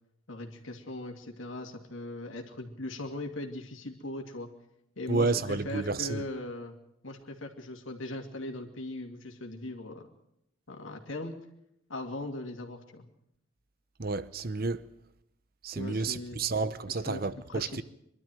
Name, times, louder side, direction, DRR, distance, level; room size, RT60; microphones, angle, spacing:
voice 1, 0.3-4.5 5.0-6.8 7.0-10.1 10.7-11.3 11.9-13.1 15.7-16.5 16.9-17.2 17.5-17.6, left 1 dB, 75° left, 2.6 m, -39 dB
voice 2, 5.1-6.2 14.0-14.8 15.6-17.8, right 3 dB, 45° right, 0.9 m, -30 dB
23.5 x 12.5 x 9.2 m
head